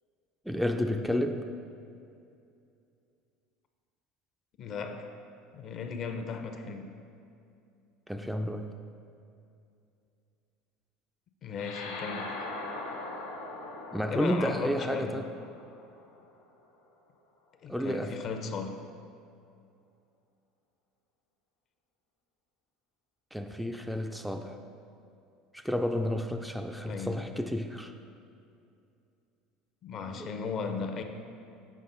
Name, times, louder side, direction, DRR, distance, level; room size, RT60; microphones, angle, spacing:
voice 1, 0.5-1.4 8.1-8.7 13.9-15.3 17.7-18.2 23.3-24.6 25.5-27.9 30.2-30.3, equal, ahead, 5 dB, 0.4 m, -31 dB
voice 2, 4.6-5.1 5.5-6.9 11.4-12.4 14.1-15.2 17.6-18.9 26.9-27.5 29.8-31.0, left 5 dB, 45° left, 6 dB, 0.6 m, -36 dB
sound 1, 11.6-16.3, left 2 dB, 80° left, 0.9 m, -41 dB
7.4 x 5.2 x 3.9 m, 2.5 s
hypercardioid pair, 70°, 0 cm